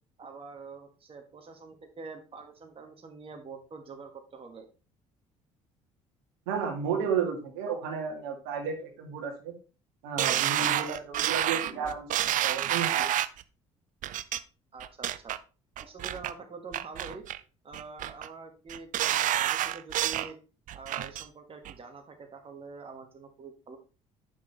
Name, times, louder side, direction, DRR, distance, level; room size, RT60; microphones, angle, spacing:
voice 1, 0.2-4.7 14.7-15.4 15.8-17.2 17.6-20.4 20.7-23.8, right 4 dB, 35° right, 4 dB, 1.6 m, -45 dB
voice 2, 6.5-9.5 10.0-13.1, right 6 dB, 80° right, 2 dB, 1.9 m, -33 dB
sound 1, 10.2-13.4 14.0-14.4 14.8-15.4 15.8-16.3 16.7-17.4 17.7-18.3 18.7-20.3 20.7-21.2 21.6-21.7, right 12 dB, 55° right, 0.6 m, -29 dB
8.4 x 6.1 x 3.3 m, 0.34 s
hypercardioid pair, 60°, 16 cm